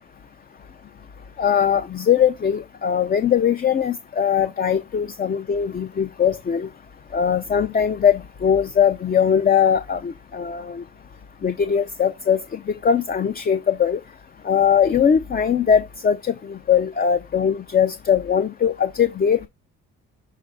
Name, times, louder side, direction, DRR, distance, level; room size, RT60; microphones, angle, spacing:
voice 1, 1.4-6.7 7.1-10.8 11.4-14.0 14.4-19.5, left 8 dB, 30° left, 0.5 m, -20 dB
6.6 x 3.2 x 5.4 m
cardioid pair, 90°, 30 cm